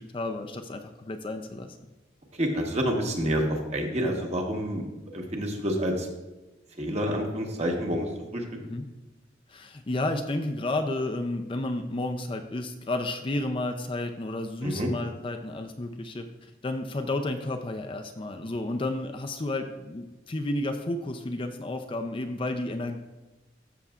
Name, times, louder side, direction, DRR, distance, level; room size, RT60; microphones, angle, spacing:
voice 1, 0.0-1.8 8.6-8.9 9.5-16.2 16.6-23.0, left 2 dB, 30° left, 5 dB, 0.5 m, -31 dB
voice 2, 2.4-3.4 3.7-4.9 5.1-6.1 6.8-8.4 14.6-14.9, equal, 35° right, 1 dB, 1.2 m, -28 dB
13.0 x 6.7 x 2.4 m, 1.1 s
head